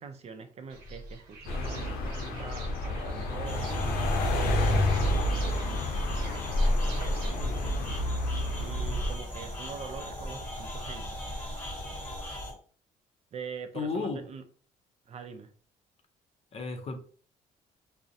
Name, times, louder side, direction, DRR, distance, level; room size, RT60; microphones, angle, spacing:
voice 1, 0.0-8.0 8.6-11.2 13.3-14.4 15.1-15.5, right 5 dB, 45° right, 0.4 m, -44 dB
sound 1, 0.7-7.3, left 1 dB, 90° right, 0.7 m, -34 dB
sound 2, 1.5-9.2, left 1 dB, 85° left, 0.6 m, -30 dB
sound 3, 3.4-12.5, left 1 dB, 10° left, 1.3 m, -40 dB
voice 2, 13.8-14.2 16.5-17.0, left 4 dB, 40° left, 0.5 m, -33 dB
2.4 x 2.0 x 2.6 m
cardioid pair, 90°, 16 cm